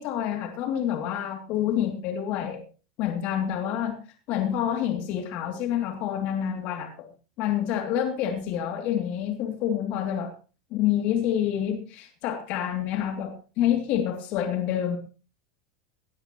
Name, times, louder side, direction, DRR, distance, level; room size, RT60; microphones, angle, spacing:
voice 1, 0.0-2.6 3.0-4.0 4.3-7.1 7.4-10.3 10.7-15.0, left 10 dB, 50° left, 4 dB, 2.8 m, -27 dB
19.0 x 13.0 x 3.1 m, 0.35 s
supercardioid pair, 140°, 3 cm